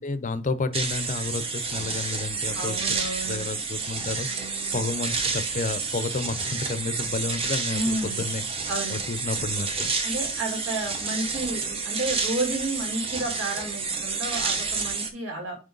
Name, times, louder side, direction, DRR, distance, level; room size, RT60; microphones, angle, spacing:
voice 1, 0.0-2.8 3.2-4.3 4.7-8.5 8.9-9.9, left 3 dB, 40° left, 0.6 m, -31 dB
sound 1, 0.7-15.1, right 4 dB, 30° right, 1.0 m, -29 dB
voice 2, 2.5-3.5 4.2-4.8 7.6-8.2 8.7-9.0 10.0-15.6, right 2 dB, 80° right, 2.9 m, -31 dB
9.0 x 3.1 x 3.9 m
head